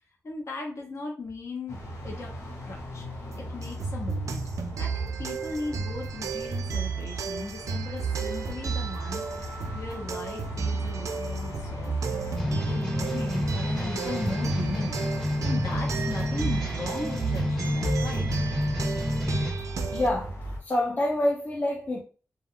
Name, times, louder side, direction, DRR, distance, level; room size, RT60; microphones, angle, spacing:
voice 1, 0.2-1.8 2.0-2.3 2.6-3.0 3.3-4.5 4.8-9.2 9.7-18.3, left 3 dB, 60° left, 0.8 m, -37 dB
sound 1, 1.7-20.6, equal, 80° left, 1.2 m, -39 dB
sound 2, 3.6-20.1, right 5 dB, 85° right, 0.3 m, -33 dB
sound 3, 12.4-19.5, left 1 dB, 5° left, 1.0 m, -29 dB
voice 2, 19.9-20.3 20.6-22.0, left 1 dB, 35° left, 0.6 m, -26 dB
2.3 x 2.2 x 3.6 m
wide cardioid pair, 90°, 5 cm